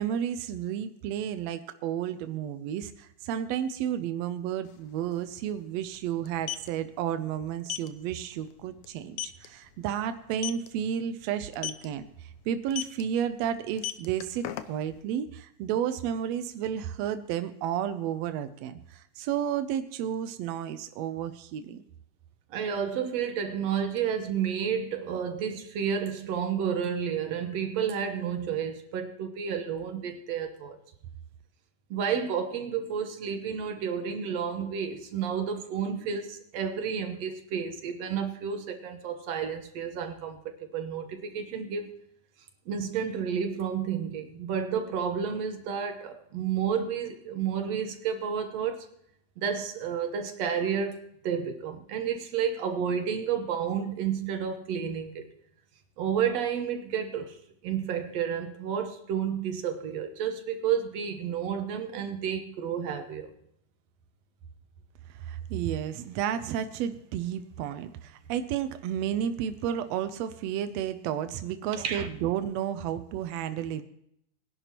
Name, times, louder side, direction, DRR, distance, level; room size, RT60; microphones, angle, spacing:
voice 1, 0.0-12.0 12.5-21.8 65.3-73.8, right 9 dB, 85° right, 10 dB, 1.5 m, -32 dB
sound 1, 4.6-4.7 5.0-5.2 6.2-6.7 7.7-7.9 8.3-8.5 8.8-8.9 9.2-9.5 10.3-10.7 11.5-11.9 12.7-13.0 13.7-15.0, left 12 dB, 80° left, 1.6 m, -33 dB
voice 2, 22.5-30.8 31.9-40.4 40.7-41.9 42.7-48.9 49.4-55.2 56.0-57.4 57.6-63.3 71.7-72.1, right 7 dB, 65° right, 6 dB, 1.9 m, -31 dB
20.5 x 11.0 x 2.9 m, 0.72 s
omnidirectional pair, 3.8 m